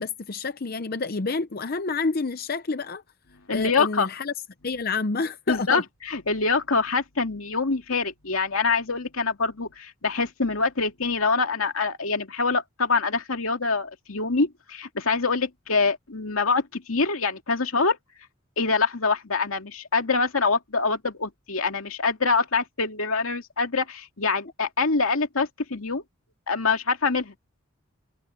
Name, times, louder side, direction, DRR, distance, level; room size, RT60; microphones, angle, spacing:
voice 1, 0.0-3.0 3.5-4.3 4.6-5.8, left 4 dB, 45° left, 0.7 m, -28 dB
voice 2, 3.5-4.1 5.5-5.8 6.1-18.0 18.6-26.0 26.5-27.3, left 4 dB, 85° left, 2.3 m, -25 dB
head